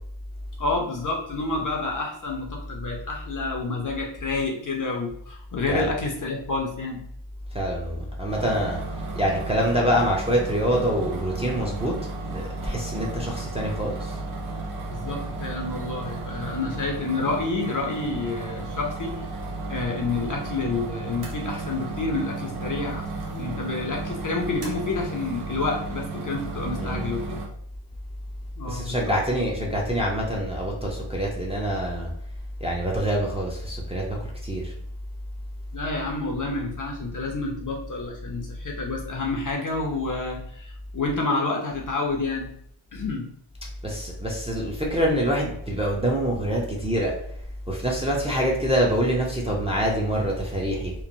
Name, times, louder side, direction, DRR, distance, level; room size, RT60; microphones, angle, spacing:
voice 1, 0.6-7.0 14.9-19.2 19.7-27.4 28.6-29.1 35.7-42.5 42.9-43.3, left 3 dB, 40° left, 0 dB, 0.5 m, -29 dB
voice 2, 7.5-8.8 9.1-11.9 12.3-14.2 26.8-27.1 28.7-32.1 32.6-34.2 34.4-34.7 43.8-47.1 47.7-50.9, equal, 15° right, -3 dB, 0.4 m, -25 dB
sound 1, 8.3-27.5, right 4 dB, 90° right, 0.8 m, -35 dB
2.9 x 2.0 x 2.5 m, 0.69 s
wide cardioid pair, 125°, 48 cm